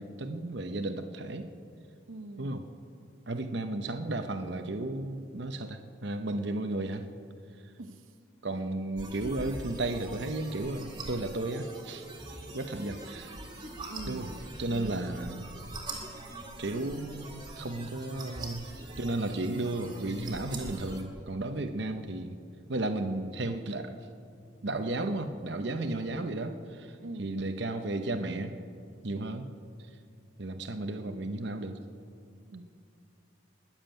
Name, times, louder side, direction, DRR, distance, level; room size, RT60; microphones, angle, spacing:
voice 1, 0.0-1.5 2.4-2.6 3.3-7.0 8.4-12.1 12.5-13.3 14.1-14.3 14.6-15.5 16.6-18.6 19.0-22.3 22.7-24.0 24.6-28.5 29.0-29.5 30.4-31.8, right 2 dB, 60° right, 7 dB, 0.8 m, -34 dB
voice 2, 2.1-2.6 7.8-8.0 13.9-14.4 14.7-15.1 27.0-27.3 32.5-32.6, right 2 dB, 90° right, 8 dB, 0.9 m, -43 dB
sound 1, 9.0-21.0, right 2 dB, 20° right, 2.1 m, -43 dB
21.0 x 7.4 x 9.0 m, 2.4 s
head